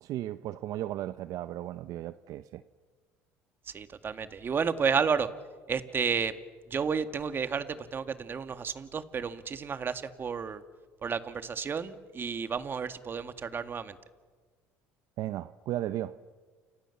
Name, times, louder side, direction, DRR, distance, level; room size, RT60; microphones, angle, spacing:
voice 1, 0.0-2.6 15.2-16.2, right 13 dB, 65° right, 0.8 m, -35 dB
voice 2, 3.7-5.3 5.7-6.3 6.7-10.6 11.0-14.0, right 6 dB, 35° right, 2.0 m, -31 dB
29.5 x 27.0 x 7.2 m
supercardioid pair, 90°, 6 cm